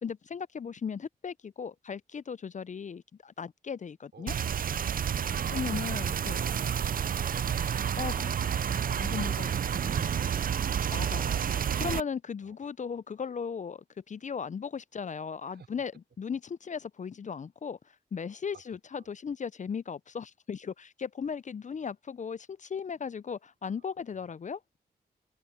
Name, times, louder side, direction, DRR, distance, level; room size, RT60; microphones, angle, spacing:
voice 1, 0.0-4.3 5.5-6.4 8.0-9.5 9.8-10.1 10.9-11.4 11.8-15.9 16.2-17.8 18.1-24.6, left 6 dB, 45° left, 0.5 m, -37 dB
sound 1, 4.3-12.0, right 8 dB, 55° right, 0.5 m, -30 dB
voice 2, 5.3-8.5 12.4-12.6 12.9-13.0 15.5-15.8 18.5-19.1 23.7-24.3, right 6 dB, 70° right, 4.3 m, -55 dB
open air
supercardioid pair, 40°, 18 cm